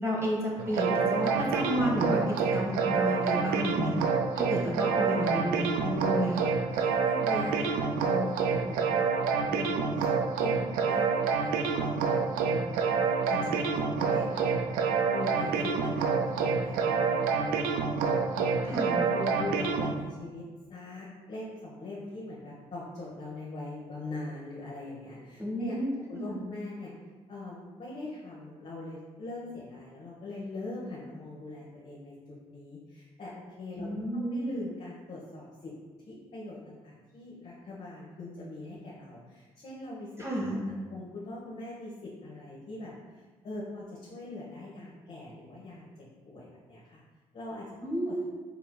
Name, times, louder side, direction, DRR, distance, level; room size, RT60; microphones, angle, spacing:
voice 1, 0.0-4.1 4.4-6.4 18.7-19.1 25.4-26.5 33.8-34.5 40.2-40.6 47.8-48.3, equal, 20° right, -4 dB, 1.3 m, -31 dB
sound 1, 0.6-19.9, right 5 dB, 75° right, 0.4 m, -28 dB
voice 2, 6.7-9.1 9.5-10.1 10.4-11.0 11.4-14.4 15.1-18.0 18.3-18.8 19.1-20.4 20.7-26.9 27.3-32.1 32.5-33.9 34.1-35.7 36.1-45.9 46.3-47.0 47.3-48.3, left 2 dB, 45° left, -6 dB, 1.0 m, -41 dB
4.9 x 3.2 x 2.2 m, 1.3 s
hypercardioid pair, 50°, 15 cm